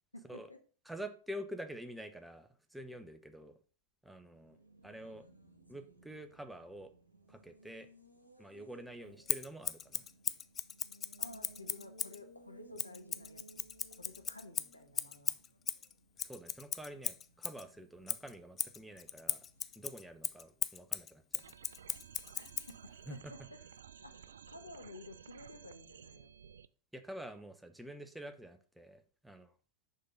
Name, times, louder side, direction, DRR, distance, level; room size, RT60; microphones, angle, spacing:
voice 1, 0.1-0.6 9.0-9.2 11.2-13.7 14.0-15.4 22.3-23.4 24.0-26.3, left 2 dB, 85° left, 6 dB, 1.0 m, -53 dB
voice 2, 0.9-3.6 4.0-4.6 4.8-5.3 5.7-6.9 7.3-7.9 8.4-10.0 16.2-19.5 19.8-21.4 23.1-23.3 26.9-29.5, right 1 dB, 5° right, 8 dB, 0.8 m, -47 dB
Race car auto racing, 4.3-20.5, right 1 dB, 85° right, 1.2 m, -62 dB
Scissors, 9.3-12.2 12.8-17.6 18.1-22.7, left 8 dB, 25° left, 0.4 m, -38 dB
sound 1, 21.4-26.7, right 8 dB, 65° right, 0.3 m, -55 dB
6.5 x 5.6 x 3.8 m, 0.38 s
figure-of-eight pair, 90°, 0 cm